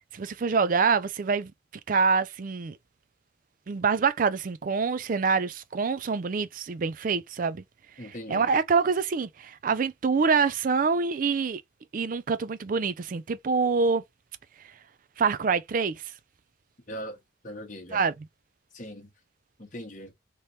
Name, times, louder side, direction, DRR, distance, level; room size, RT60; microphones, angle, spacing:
voice 1, 0.1-1.5 1.9-2.8 3.7-7.6 8.3-11.6 11.9-14.0 15.2-16.0 17.9-18.1, right 5 dB, 45° right, 0.4 m, -25 dB
voice 2, 8.0-8.5 16.9-18.0 18.7-19.1 19.6-20.1, equal, 40° left, 1.2 m, -40 dB
3.3 x 3.1 x 2.6 m
head